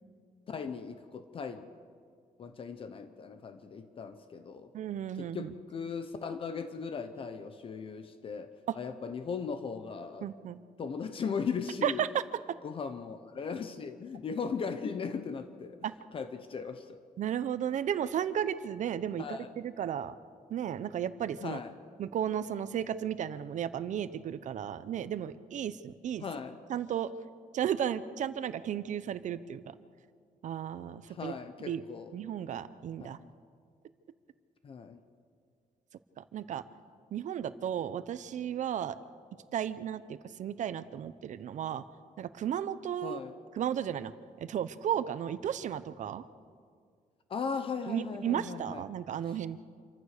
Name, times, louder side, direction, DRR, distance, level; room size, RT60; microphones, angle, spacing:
voice 1, 0.5-1.7 2.4-4.7 5.2-10.2 10.8-12.1 12.6-15.8 16.1-17.0 19.2-19.5 21.4-21.7 26.2-26.6 31.1-32.1 33.0-33.3 34.6-35.0 43.0-43.3 47.3-48.8, left 5 dB, 40° left, 9 dB, 0.9 m, -38 dB
voice 2, 4.7-5.5 8.7-8.8 10.2-10.6 11.8-12.1 15.8-15.9 17.2-20.1 20.5-21.6 22.0-26.2 26.7-27.1 27.5-29.6 30.4-31.3 31.6-31.8 32.1-33.2 36.2-36.6 37.1-39.0 39.5-41.8 42.2-43.2 43.6-44.1 44.4-46.2 47.9-49.6, right 9 dB, 65° right, 14 dB, 0.7 m, -34 dB
27.0 x 14.5 x 6.7 m, 2.1 s
wide cardioid pair, 165°, 14 cm